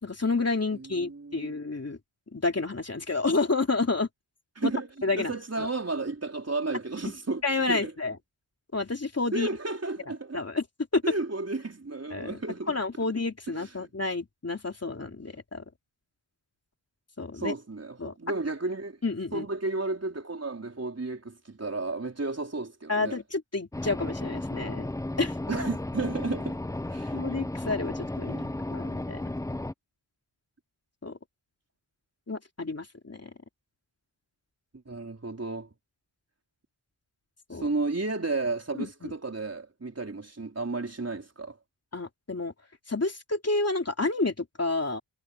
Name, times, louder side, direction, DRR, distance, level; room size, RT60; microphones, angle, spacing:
voice 1, 0.0-2.0 2.3-4.1 4.6-4.7 5.0-5.3 5.6-5.7 7.4-8.2 8.7-9.5 10.3-10.6 10.9-11.0 12.1-12.4 12.7-15.6 17.2-17.5 18.0-18.1 19.0-19.5 22.9-24.9 25.2-25.3 27.1-28.4 28.7-29.2 31.0-31.2 32.3-33.3 37.5-37.7 38.8-39.1 41.9-42.5 42.9-45.0, left 3 dB, 30° left, 3.2 m, -29 dB
voice 2, 0.7-1.5 4.6-4.9 5.2-7.4 7.7-7.9 9.3-10.4 11.0-12.8 13.6-13.7 17.4-19.0 19.3-23.2 25.5-26.6 26.9-27.2 28.2-28.6 34.9-35.7 37.6-41.6, right 3 dB, 30° right, 4.5 m, -33 dB
sound 1, 23.7-29.7, left 1 dB, 5° left, 0.5 m, -34 dB
wide cardioid pair, 125°, 48 cm